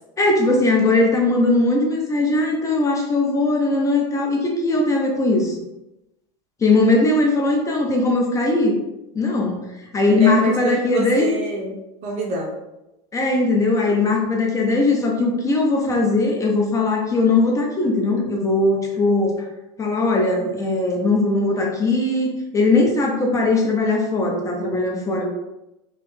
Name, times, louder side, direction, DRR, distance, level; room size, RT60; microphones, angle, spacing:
voice 1, 0.2-5.6 6.6-8.7 9.1-11.3 13.1-19.5 19.8-25.3, left 2 dB, 20° left, 0 dB, 0.6 m, -19 dB
voice 2, 10.2-12.5, right 2 dB, 40° right, 0 dB, 0.9 m, -27 dB
3.1 x 2.8 x 3.3 m, 0.94 s
supercardioid pair, 130°, 17 cm